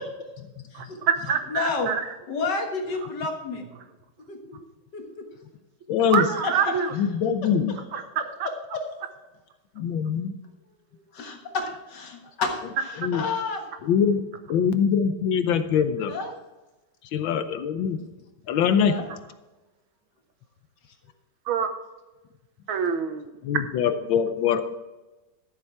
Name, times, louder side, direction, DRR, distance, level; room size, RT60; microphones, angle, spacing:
voice 1, 0.8-2.0 6.1-6.9 7.9-8.0 21.5-21.7 22.7-23.3, right 7 dB, 85° right, 8 dB, 1.8 m, -25 dB
voice 2, 1.5-1.9 2.3-3.6 4.3-4.4 4.9-5.3 6.4-6.8 8.7-8.8 11.1-13.6 16.1-16.3 18.0-18.1 18.7-19.1, left 4 dB, 60° left, 3 dB, 2.1 m, -30 dB
voice 3, 5.9-6.3 6.9-7.8 9.7-10.4 13.0-13.3 13.8-14.2 14.5-16.1 17.1-18.0 18.5-18.9 23.4-24.8, left 7 dB, 75° left, 10 dB, 1.5 m, -23 dB
12.5 x 7.2 x 4.6 m, 1.1 s
omnidirectional pair, 2.2 m